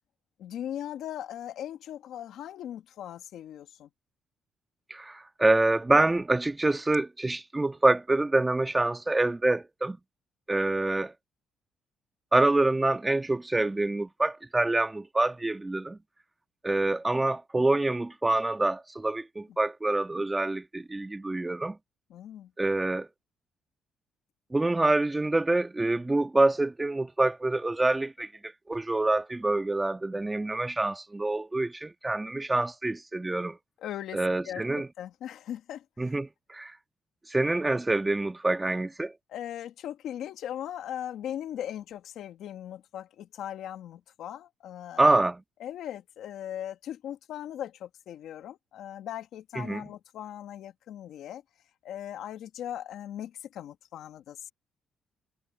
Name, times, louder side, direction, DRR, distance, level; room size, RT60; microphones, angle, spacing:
voice 1, 0.4-3.9 17.6-17.7 22.1-22.5 33.8-36.1 39.3-45.1 45.6-51.4 51.8-54.5, left 11 dB, 80° left, 2.1 m, -39 dB
voice 2, 4.9-10.0 10.5-11.1 12.3-16.0 16.6-21.8 22.6-23.1 24.5-33.6 34.1-34.9 36.0-36.7 37.3-39.1 45.0-45.4 49.6-49.8, right 2 dB, 15° right, 1.7 m, -26 dB
cardioid pair, 90°, 0 cm